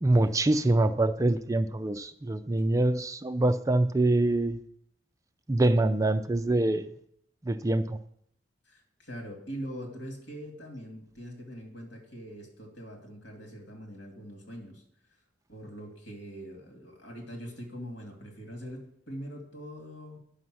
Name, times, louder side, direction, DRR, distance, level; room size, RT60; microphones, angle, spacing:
voice 1, 0.0-4.6 5.5-6.9 7.5-8.0, right 2 dB, 20° right, 11 dB, 0.4 m, -25 dB
voice 2, 2.2-2.7 8.7-14.8 15.5-20.2, equal, 85° left, 2 dB, 2.6 m, -43 dB
10.0 x 5.6 x 6.3 m, 0.70 s
head